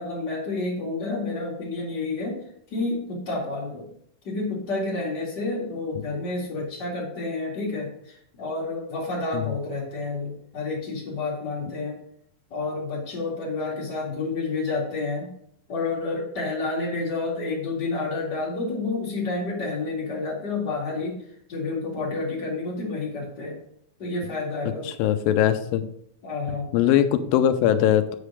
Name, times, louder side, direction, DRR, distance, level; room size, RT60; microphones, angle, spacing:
voice 1, 0.0-2.4 2.7-3.9 4.2-12.0 12.5-15.3 15.7-21.2 21.5-23.6 24.0-24.9 26.2-26.7, left 3 dB, 30° left, -4 dB, 2.4 m, -29 dB
voice 2, 25.0-25.9 26.7-28.2, left 10 dB, 80° left, 9 dB, 2.3 m, -20 dB
8.4 x 4.9 x 4.9 m, 0.68 s
omnidirectional pair, 4.2 m